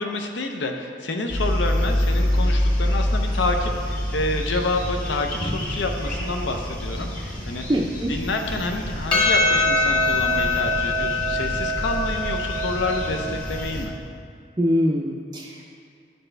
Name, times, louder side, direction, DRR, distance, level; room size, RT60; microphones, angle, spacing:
voice 1, 0.0-7.7 8.1-14.0, left 2 dB, 80° left, 4 dB, 0.6 m, -28 dB
sound 1, 1.3-13.8, equal, 45° left, 1.4 m, -27 dB
voice 2, 7.7-8.1 14.6-15.7, equal, 20° right, -3 dB, 0.4 m, -23 dB
Percussion, 9.1-13.7, left 2 dB, 30° left, 1.2 m, -23 dB
10.5 x 4.3 x 3.3 m, 2.2 s
head